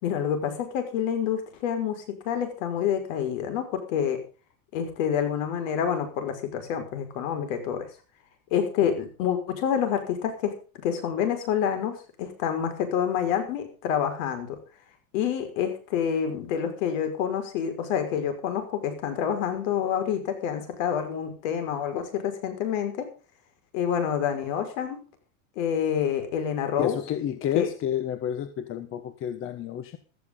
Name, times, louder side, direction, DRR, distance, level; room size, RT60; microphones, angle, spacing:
voice 1, 0.0-4.2 4.7-7.8 8.5-14.6 15.1-23.1 23.7-25.0 25.6-27.0 27.5-27.7, left 8 dB, 65° left, 8 dB, 5.6 m, -28 dB
voice 2, 26.8-30.0, left 10 dB, 30° left, 11 dB, 1.3 m, -30 dB
16.0 x 13.5 x 3.9 m, 0.36 s
supercardioid pair, 150°, 42 cm